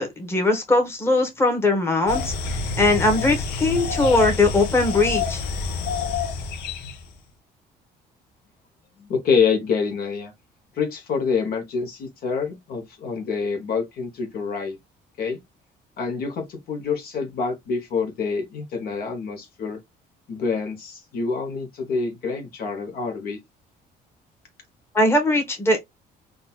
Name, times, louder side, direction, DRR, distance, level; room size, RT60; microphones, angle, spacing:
voice 1, 0.0-2.3 2.8-5.4 24.9-25.8, left 2 dB, 15° left, 1.2 m, -20 dB
sound 1, 2.1-7.0, left 4 dB, 90° left, 0.7 m, -27 dB
voice 2, 9.0-10.3 10.7-14.8 15.2-15.4 16.0-19.8 20.3-23.4, left 5 dB, 65° left, 1.0 m, -26 dB
3.9 x 2.4 x 2.2 m
cardioid pair, 110°, 17 cm